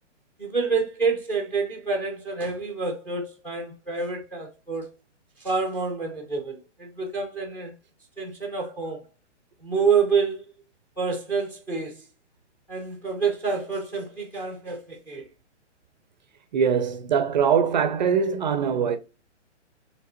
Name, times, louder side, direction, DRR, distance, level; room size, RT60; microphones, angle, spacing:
voice 1, 0.4-4.9 5.4-7.7 8.2-9.0 9.6-10.4 11.0-12.0 12.7-15.3, right 5 dB, 5° left, 0.6 m, -27 dB
voice 2, 16.5-19.0, right 7 dB, 40° right, 0.5 m, -22 dB
4.8 x 3.4 x 2.8 m
hypercardioid pair, 145°, 36 cm